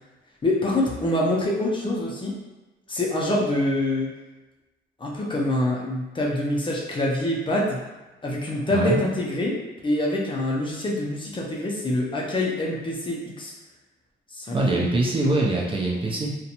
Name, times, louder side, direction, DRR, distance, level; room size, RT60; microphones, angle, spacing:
voice 1, 0.4-2.4 2.9-4.1 5.0-7.8 8.2-9.6 9.8-13.5 14.3-14.8, left 1 dB, 25° left, -3 dB, 0.5 m, -25 dB
voice 2, 8.7-9.0 14.5-16.3, right 2 dB, 25° right, -3 dB, 0.5 m, -23 dB
2.5 x 2.2 x 2.8 m, 1.1 s
cardioid pair, 90°, 20 cm